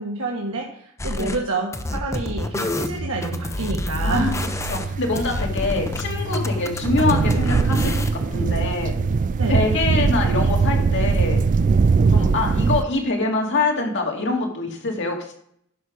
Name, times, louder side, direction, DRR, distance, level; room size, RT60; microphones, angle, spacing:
voice 1, 0.0-4.7 9.4-9.6, right 3 dB, 70° right, -2 dB, 1.4 m, -28 dB
sound 1, 1.0-1.4 1.7-6.0 6.3-8.3, left 1 dB, 15° left, 0.6 m, -28 dB
sound 2, 2.6-11.5, equal, 35° left, 1.2 m, -34 dB
voice 2, 4.0-4.3 4.7-8.9 9.5-11.4 12.1-15.3, left 3 dB, 60° left, 1 dB, 2.3 m, -24 dB
sound 3, 4.1-12.8, right 4 dB, 35° right, 0.3 m, -21 dB
11.0 x 5.6 x 4.9 m, 0.69 s
head